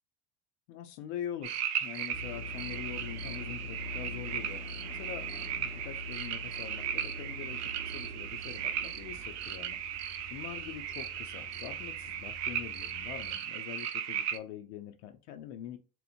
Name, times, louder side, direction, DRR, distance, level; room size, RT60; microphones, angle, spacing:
voice 1, 0.7-5.3 5.6-15.8, left 10 dB, 75° left, 0.5 m, -44 dB
sound 1, 1.4-14.4, right 9 dB, 50° right, 0.4 m, -37 dB
sound 2, 2.1-13.4, left 2 dB, 5° right, 0.6 m, -45 dB
2.9 x 2.0 x 2.5 m
supercardioid pair, 95°, 36 cm